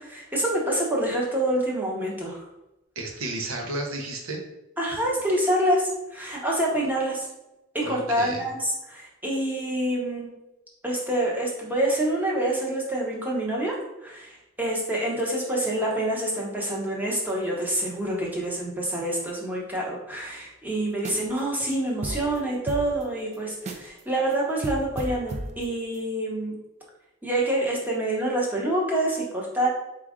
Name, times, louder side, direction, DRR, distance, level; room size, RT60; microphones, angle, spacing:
voice 1, 0.0-2.4 4.8-7.3 7.7-10.3 10.8-26.5 27.2-29.7, right 1 dB, 10° right, -3 dB, 0.9 m, -27 dB
voice 2, 3.0-4.4 7.8-8.5, right 2 dB, 75° right, 2 dB, 0.8 m, -32 dB
sound 1, 20.9-21.4 21.7-21.8 22.0-24.0 24.3-24.4 24.6-26.1, right 2 dB, 30° right, 0.4 m, -35 dB
4.5 x 2.5 x 3.6 m, 0.95 s
head